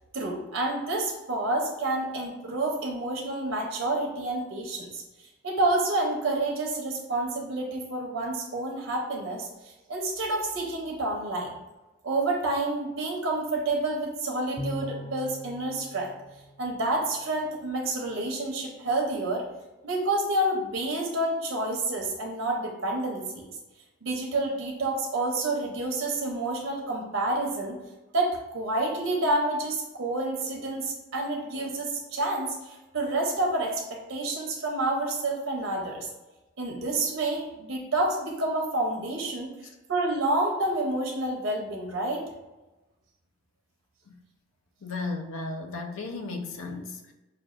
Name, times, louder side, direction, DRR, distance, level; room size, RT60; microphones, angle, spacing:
voice 1, 0.1-5.0 5.4-9.5 9.9-11.5 12.0-16.1 16.6-19.4 19.8-23.4 24.0-27.8 28.1-36.1 36.6-39.5 39.9-42.2, right 2 dB, 70° right, 0 dB, 0.7 m, -29 dB
Bowed string instrument, 14.6-17.2, equal, 25° left, 0.4 m, -40 dB
voice 2, 44.8-47.1, left 3 dB, 80° left, 5 dB, 0.5 m, -35 dB
5.8 x 2.3 x 2.5 m, 1.1 s
head